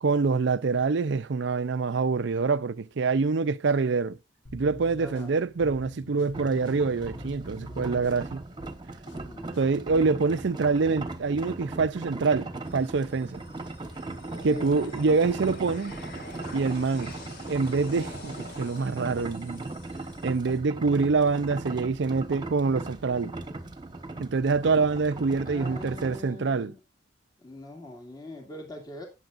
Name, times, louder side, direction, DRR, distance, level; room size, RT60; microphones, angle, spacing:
voice 1, 0.0-4.2 4.5-8.4 9.6-13.4 14.4-16.0 16.5-17.1 17.5-19.7 20.2-23.3 24.2-26.7, right 4 dB, 65° right, 0.5 m, -25 dB
sound 1, 4.4-10.1, left 1 dB, 75° left, 3.5 m, -46 dB
voice 2, 5.0-5.3 9.1-9.5 14.3-14.9 25.4-26.8 27.4-29.1, left 1 dB, 20° left, 2.4 m, -42 dB
sound 2, 6.3-26.2, right 2 dB, 25° right, 1.2 m, -39 dB
sound 3, 12.6-20.6, left 1 dB, 60° left, 2.2 m, -47 dB
18.5 x 7.0 x 2.5 m
head